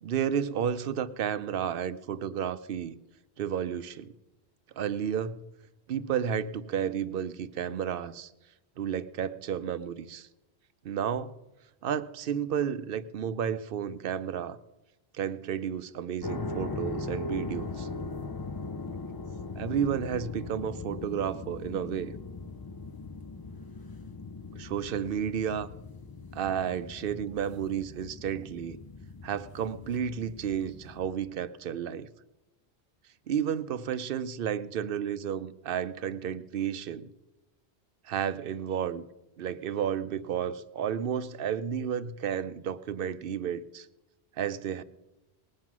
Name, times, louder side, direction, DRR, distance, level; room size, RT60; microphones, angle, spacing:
voice 1, 0.0-3.0 3.4-4.1 4.8-5.4 5.9-8.3 8.8-10.3 10.8-11.3 11.8-14.6 15.1-17.9 19.5-22.1 24.6-25.7 26.3-28.8 29.2-32.1 33.3-37.1 38.0-39.0 39.4-43.9 44.4-44.8, right 8 dB, 60° right, 0.8 m, -32 dB
sound 1, 16.2-31.1, left 3 dB, 35° left, 0.3 m, -40 dB
19.5 x 7.6 x 6.1 m
omnidirectional pair, 1.1 m